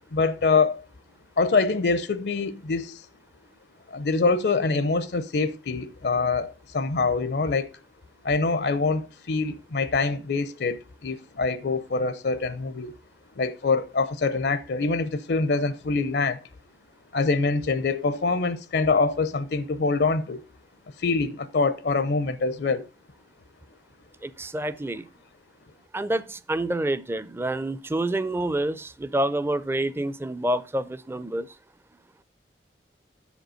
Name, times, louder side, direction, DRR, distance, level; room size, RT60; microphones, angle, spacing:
voice 1, 0.1-0.8 1.4-3.0 3.9-7.7 8.2-12.9 13.4-16.4 17.1-20.4 21.0-22.9, left 4 dB, 65° left, 0.6 m, -25 dB
voice 2, 24.2-25.1 25.9-31.5, right 1 dB, 15° right, 0.4 m, -28 dB
7.0 x 5.2 x 6.3 m
head